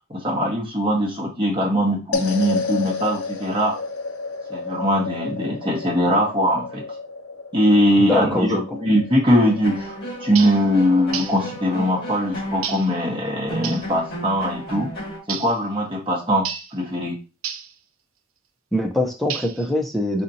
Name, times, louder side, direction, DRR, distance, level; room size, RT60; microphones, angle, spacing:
voice 1, 0.1-3.8 4.5-6.8 7.5-9.9 10.2-14.9 15.3-16.5 16.7-17.1, equal, 25° right, -2 dB, 1.4 m, -21 dB
sound 1, 2.1-12.6, left 3 dB, 85° left, 0.7 m, -32 dB
voice 2, 8.0-8.6 18.7-20.2, left 1 dB, ahead, 1 dB, 0.7 m, -23 dB
sound 2, 9.3-15.2, right 1 dB, 50° left, 2.1 m, -33 dB
sound 3, 10.3-10.6 11.1-11.4 12.6-12.9 13.6-13.9 15.3-15.6 16.4-16.7 17.4-17.7 19.3-19.7, right 8 dB, 85° right, 0.5 m, -31 dB
4.2 x 4.2 x 2.8 m, 0.32 s
head